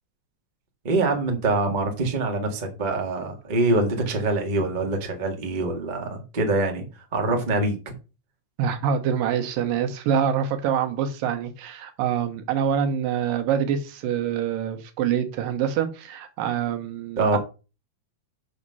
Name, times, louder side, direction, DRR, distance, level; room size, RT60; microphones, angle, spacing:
voice 1, 0.8-6.8 7.1-7.7 17.2-17.4, right 2 dB, 30° right, 0.8 m, -24 dB
voice 2, 8.6-17.4, right 8 dB, 85° right, 2.7 m, -25 dB
6.3 x 5.8 x 5.5 m
omnidirectional pair, 3.9 m